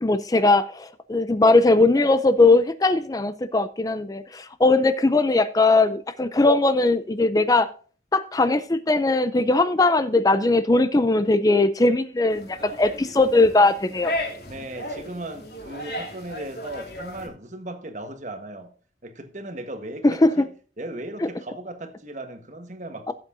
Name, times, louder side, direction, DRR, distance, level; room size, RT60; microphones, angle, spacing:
voice 1, 0.0-7.7 8.1-14.1 20.0-20.5 23.1-23.2, left 2 dB, 20° left, 0.4 m, -19 dB
sound 1, 12.3-17.3, left 1 dB, 65° left, 2.9 m, -35 dB
voice 2, 14.5-18.7 19.0-20.5 20.8-23.1, right 1 dB, 40° right, 1.4 m, -37 dB
16.0 x 8.0 x 2.7 m
head